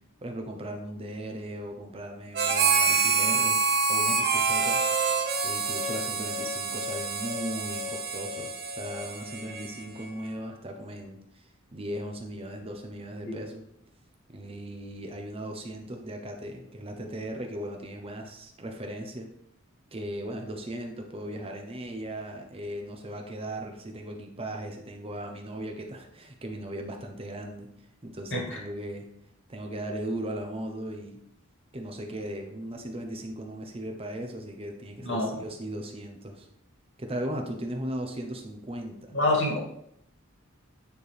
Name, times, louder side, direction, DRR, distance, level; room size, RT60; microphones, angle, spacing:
voice 1, 0.2-3.6 3.9-4.8 5.1-13.6 14.3-19.3 19.9-27.7 28.0-29.1 29.5-31.2 31.7-36.5 37.0-39.1, right 1 dB, 30° right, 3 dB, 0.8 m, -37 dB
Harmonica, 2.3-10.1, right 4 dB, 50° right, 1.0 m, -27 dB
voice 2, 35.0-35.3 39.1-39.6, left 2 dB, 60° left, -2 dB, 2.3 m, -26 dB
9.2 x 4.5 x 3.4 m, 0.74 s
head